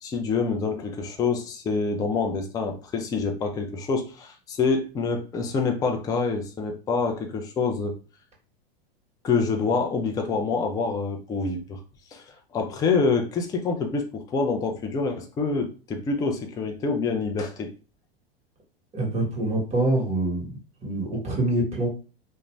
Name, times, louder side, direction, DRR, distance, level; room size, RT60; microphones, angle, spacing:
voice 1, 0.0-7.9 9.2-11.8 12.1-17.7, left 4 dB, 15° left, 4 dB, 0.4 m, -26 dB
voice 2, 18.9-20.5 20.8-21.9, right 1 dB, 20° right, -1 dB, 1.2 m, -25 dB
2.5 x 2.1 x 3.1 m, 0.34 s
hypercardioid pair, 110°, 30 cm